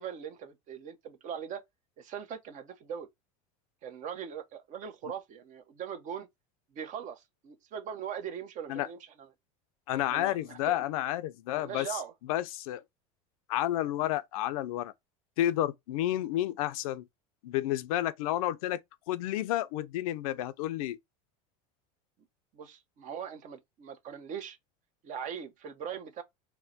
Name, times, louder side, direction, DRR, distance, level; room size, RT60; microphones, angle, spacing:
voice 1, 0.0-1.6 2.0-3.1 3.8-6.3 6.7-9.3 10.0-10.8 11.5-12.1 22.5-24.6 25.0-26.2, right 8 dB, 45° right, 0.9 m, -40 dB
voice 2, 9.9-11.9 12.3-12.8 13.5-14.9 15.4-17.0 17.4-18.8 19.1-21.0, left 14 dB, 80° left, 0.6 m, -30 dB
4.4 x 2.2 x 4.0 m
supercardioid pair, 120°, 18 cm